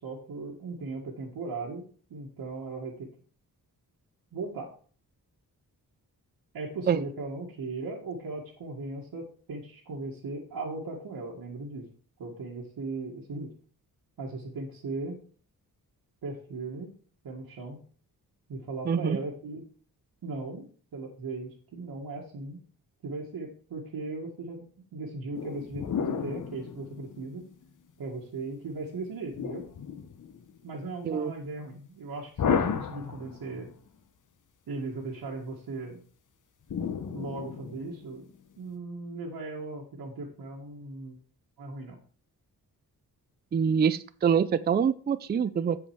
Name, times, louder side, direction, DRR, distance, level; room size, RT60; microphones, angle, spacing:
voice 1, 0.0-3.1 4.3-4.7 6.5-11.9 12.2-13.5 14.2-15.2 16.2-16.9 17.2-17.8 18.5-19.7 20.2-20.7 20.9-22.6 23.0-27.5 28.0-29.7 30.6-33.7 34.7-36.0 37.1-41.2 41.6-42.0, right 3 dB, 85° right, -3 dB, 1.9 m, -38 dB
voice 2, 18.9-19.2 31.0-31.3 43.5-45.9, right 7 dB, 30° right, 14 dB, 0.4 m, -25 dB
sound 1, 25.3-27.6 29.3-30.6 32.4-33.7 36.7-38.1, left 7 dB, 55° left, 0.9 m, -33 dB
7.8 x 7.3 x 4.7 m, 0.43 s
wide cardioid pair, 150°, 37 cm